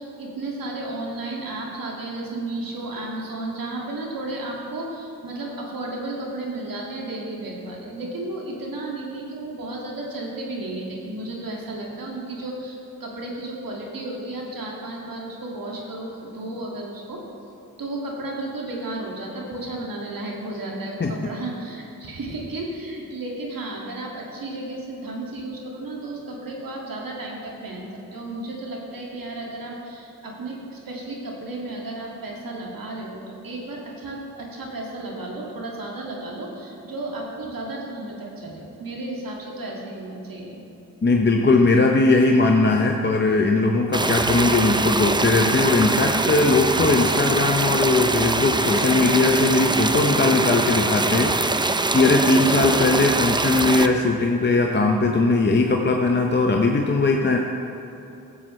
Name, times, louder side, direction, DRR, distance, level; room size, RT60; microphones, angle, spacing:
voice 1, 0.0-17.2 17.8-40.6 52.2-52.7, right 2 dB, 60° right, -2 dB, 2.1 m, -33 dB
voice 2, 41.0-57.4, left 3 dB, 30° left, 2 dB, 0.8 m, -19 dB
sound 1, 43.9-53.9, right 2 dB, 10° right, 0.5 m, -23 dB
13.5 x 7.5 x 3.2 m, 2.8 s
supercardioid pair, 45°, 38 cm